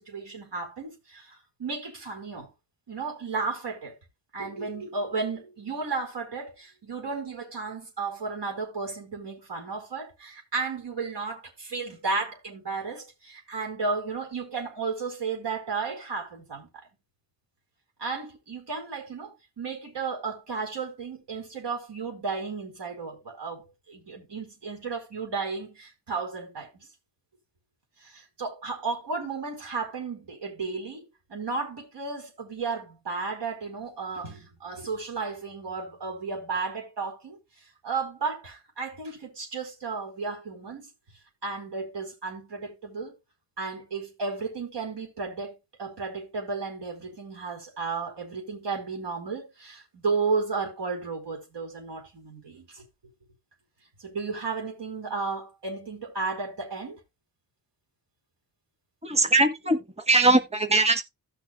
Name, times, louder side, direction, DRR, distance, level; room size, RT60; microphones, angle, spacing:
voice 1, 0.0-2.5 2.9-3.9 4.3-16.9 18.0-26.9 28.0-37.4 37.8-40.9 41.4-43.2 43.6-52.8 54.0-57.0, right 4 dB, 80° right, 4.6 m, -33 dB
voice 2, 59.0-61.0, right 2 dB, 15° right, 1.4 m, -21 dB
16.0 x 6.5 x 2.3 m
cardioid pair, 50°, 40 cm